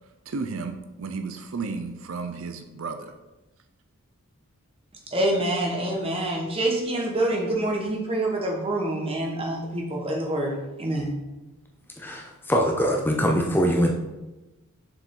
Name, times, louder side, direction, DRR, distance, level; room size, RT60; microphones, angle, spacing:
voice 1, 0.3-3.1, right 4 dB, 65° right, 8 dB, 0.5 m, -33 dB
voice 2, 5.1-11.1, right 1 dB, 25° right, 0 dB, 1.1 m, -26 dB
voice 3, 12.0-13.9, equal, 10° left, 0 dB, 0.6 m, -23 dB
6.7 x 4.8 x 3.8 m, 1.1 s
head